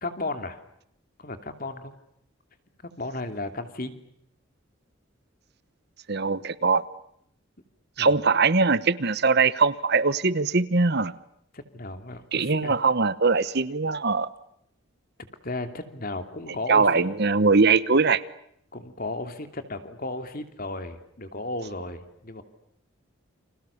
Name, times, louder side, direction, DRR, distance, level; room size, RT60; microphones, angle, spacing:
voice 1, 0.0-0.6 1.2-1.9 2.8-4.0 8.0-8.1 11.5-12.8 15.4-17.0 18.7-22.4, left 2 dB, 45° left, 8 dB, 2.9 m, -34 dB
voice 2, 6.1-6.8 8.0-11.1 12.3-14.3 16.7-18.2, right 4 dB, 50° right, 16 dB, 1.0 m, -21 dB
30.0 x 26.5 x 7.1 m, 0.74 s
head